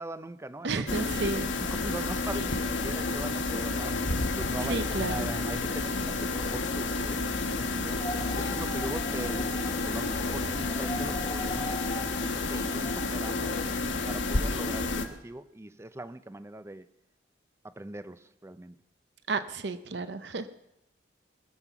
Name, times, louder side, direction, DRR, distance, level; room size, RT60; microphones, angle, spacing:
voice 1, 0.0-1.0 1.7-4.0 4.4-8.0 8.3-11.7 12.1-13.5 14.1-16.9 17.6-18.7, right 1 dB, 15° right, 13 dB, 0.5 m, -41 dB
voice 2, 0.6-1.5 4.6-5.3 19.3-20.5, right 3 dB, 60° right, 12 dB, 0.7 m, -32 dB
sound 1, 0.9-15.1, left 3 dB, 80° left, 1.2 m, -30 dB
Wind, 8.0-13.1, left 1 dB, 20° left, 1.2 m, -41 dB
21.0 x 7.4 x 5.9 m, 0.87 s
head